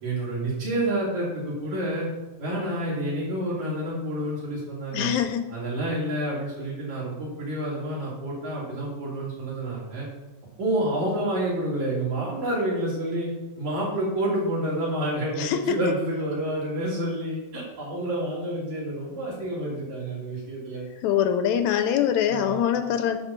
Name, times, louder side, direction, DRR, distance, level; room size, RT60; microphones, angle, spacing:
voice 1, 0.0-2.1 2.4-5.1 5.5-10.1 10.6-13.3 13.6-20.8 22.3-22.6, right 1 dB, 60° right, -6 dB, 4.4 m, -29 dB
voice 2, 4.9-5.5 15.4-15.8 21.0-23.2, left 9 dB, 80° left, 8 dB, 1.8 m, -23 dB
10.5 x 4.2 x 6.0 m, 1.1 s
omnidirectional pair, 3.7 m